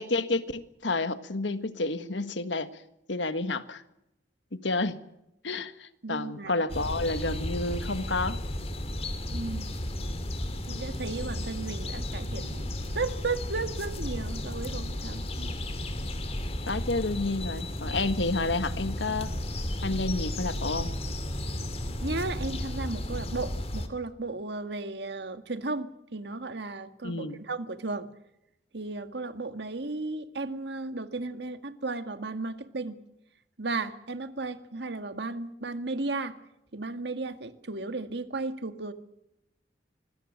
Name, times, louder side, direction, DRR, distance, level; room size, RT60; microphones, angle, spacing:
voice 1, 0.0-2.7 3.1-3.8 4.5-5.0 5.4-8.4 16.7-19.3 19.8-20.9 27.0-27.4, left 2 dB, 85° left, 11 dB, 1.6 m, -30 dB
voice 2, 6.0-6.6 9.3-9.7 10.7-12.7 12.9-15.5 22.0-28.1 28.7-33.0 33.6-36.4 36.7-38.9, right 3 dB, 70° right, 9 dB, 1.9 m, -34 dB
sound 1, 6.7-23.9, left 1 dB, 35° left, 3.0 m, -33 dB
25.5 x 21.5 x 6.5 m, 0.86 s
head